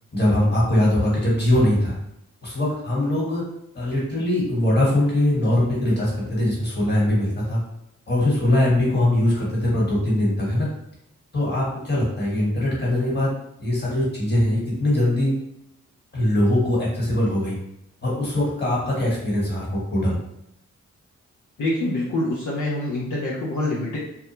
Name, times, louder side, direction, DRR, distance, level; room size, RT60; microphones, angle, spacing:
voice 1, 0.1-1.9 2.4-3.4 3.7-7.6 8.1-10.7 11.3-13.3 13.6-15.3 16.1-17.6 18.0-20.2, left 1 dB, 30° left, -5 dB, 1.4 m, -21 dB
voice 2, 21.6-24.0, left 1 dB, 65° left, -6 dB, 0.7 m, -25 dB
2.3 x 2.1 x 3.0 m, 0.79 s
cardioid pair, 50°, 32 cm